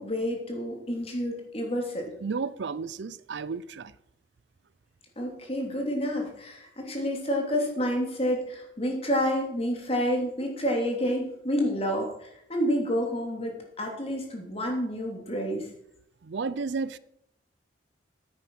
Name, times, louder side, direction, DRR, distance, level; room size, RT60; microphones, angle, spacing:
voice 1, 0.0-2.1 5.2-15.7, equal, 35° left, 3.1 m, -29 dB
voice 2, 2.2-3.9 16.2-17.0, right 4 dB, 70° right, 0.5 m, -32 dB
9.7 x 9.2 x 6.2 m
head